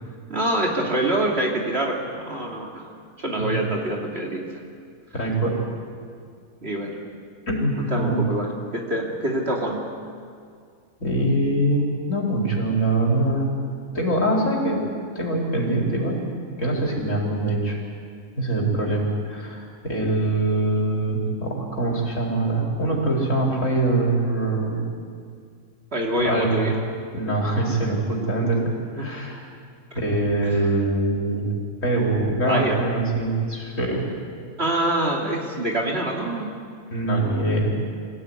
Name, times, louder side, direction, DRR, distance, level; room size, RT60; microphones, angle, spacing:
voice 1, 0.3-2.9 3.2-4.6 5.1-5.3 6.6-7.0 7.8-9.9 25.9-26.7 29.0-29.1 30.4-30.7 32.5-32.8 34.6-36.5, right 1 dB, 45° right, -1 dB, 3.0 m, -25 dB
voice 2, 5.1-5.6 7.5-8.2 11.0-13.5 13.9-14.8 15.1-16.2 16.6-17.8 18.4-24.8 26.2-26.7 27.1-29.4 29.9-31.5 31.8-34.0 36.9-37.7, right 2 dB, 60° left, -2 dB, 4.8 m, -23 dB
24.5 x 16.5 x 9.7 m, 2.2 s
omnidirectional pair, 1.5 m